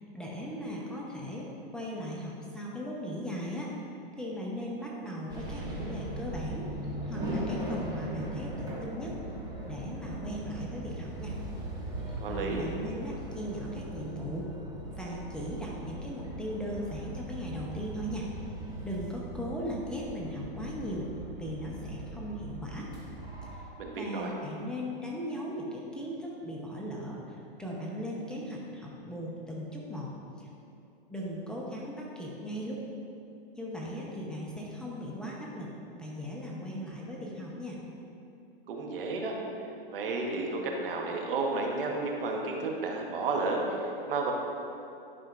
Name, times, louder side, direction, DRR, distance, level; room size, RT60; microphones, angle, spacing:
voice 1, 0.1-1.5 1.7-3.7 4.2-6.7 7.0-9.1 9.6-11.3 12.3-14.5 15.0-18.3 18.8-21.1 21.4-22.9 23.9-30.1 30.4-30.5 31.1-32.8 33.6-37.8, equal, 5° left, -4 dB, 0.8 m, -38 dB
sound 1, 5.3-23.6, right 1 dB, 15° right, 1.4 m, -39 dB
voice 2, 12.2-12.6 23.8-24.3 38.7-39.3 39.9-44.3, right 3 dB, 65° right, 1 dB, 1.2 m, -32 dB
11.0 x 5.6 x 2.5 m, 2.7 s
hypercardioid pair, 125°, 29 cm